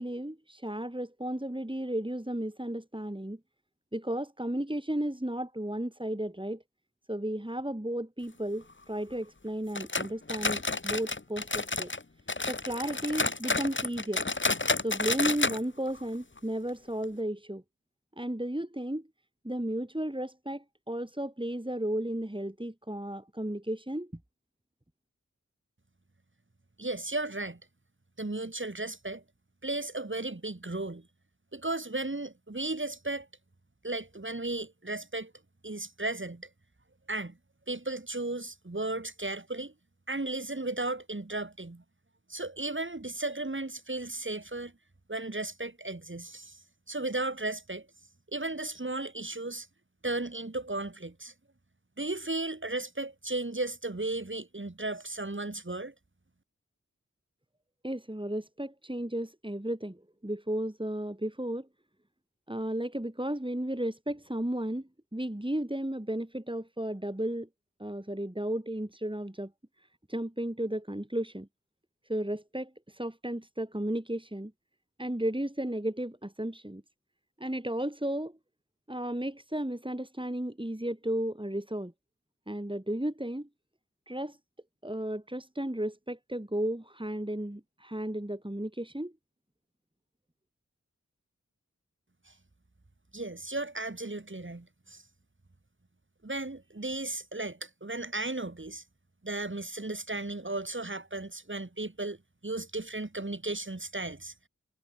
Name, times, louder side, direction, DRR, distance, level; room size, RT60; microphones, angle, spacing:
voice 1, 0.0-3.4 3.9-6.6 7.1-11.9 12.5-14.3 14.8-17.6 18.2-19.1 19.4-24.1 57.8-61.7 62.5-67.5 67.8-69.5 69.8-71.5 72.1-74.5 75.0-76.8 77.4-78.4 78.9-81.9 82.5-83.5 84.1-84.4 84.8-89.1, right 1 dB, 15° right, 5.2 m, -34 dB
sound 1, 9.7-12.0 12.3-15.6 15.9-16.0 16.4-16.5 17.0-17.1, left 3 dB, 40° left, 1.4 m, -30 dB
voice 2, 26.8-27.6 28.2-29.2 29.6-31.1 31.5-33.3 33.8-35.3 35.6-36.5 37.1-37.4 37.7-39.7 40.1-41.8 42.3-44.7 45.1-46.6 46.9-47.9 48.3-49.7 50.0-51.3 52.0-55.9 92.3-92.4 93.1-95.0 96.2-98.8 99.2-102.2 102.4-104.3, right 2 dB, 40° right, 3.1 m, -35 dB
wide cardioid pair, 50°, 30 cm